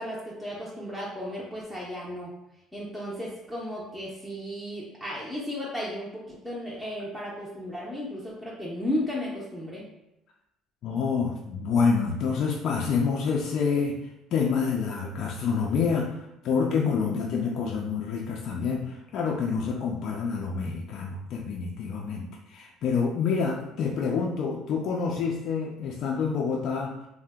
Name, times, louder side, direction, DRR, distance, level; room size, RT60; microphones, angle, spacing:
voice 1, 0.0-2.3 2.7-9.9, left 1 dB, ahead, -6 dB, 0.5 m, -34 dB
voice 2, 10.8-14.0 14.3-26.9, left 5 dB, 55° left, -1 dB, 0.3 m, -27 dB
2.8 x 2.0 x 3.4 m, 0.88 s
cardioid pair, 130°, 0 cm